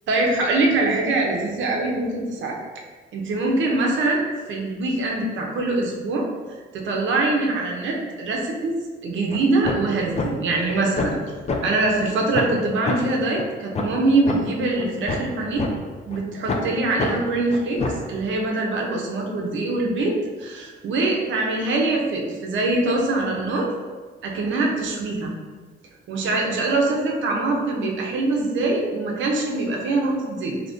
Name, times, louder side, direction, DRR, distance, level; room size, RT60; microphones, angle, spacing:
voice 1, 0.1-2.6 3.1-4.2 4.5-6.3 6.7-8.7 9.0-11.2 11.6-15.6 16.1-17.8 18.1-20.2 20.4-23.7 24.2-25.4 26.1-30.7, right 2 dB, 75° right, -1 dB, 0.7 m, -23 dB
sound 1, 9.3-9.4 9.6-9.9 10.2-10.3 10.7-11.2 11.5-11.6 12.0-12.1 12.3-12.6 12.9-13.0 13.4-13.5 13.7-13.9 14.3-14.4 14.8-15.7 16.1-16.2 16.5-16.7 17.0-17.1 17.5-18.1, left 3 dB, 35° left, 0.5 m, -25 dB
3.5 x 2.8 x 2.6 m, 1.5 s
cardioid pair, 90°, 20 cm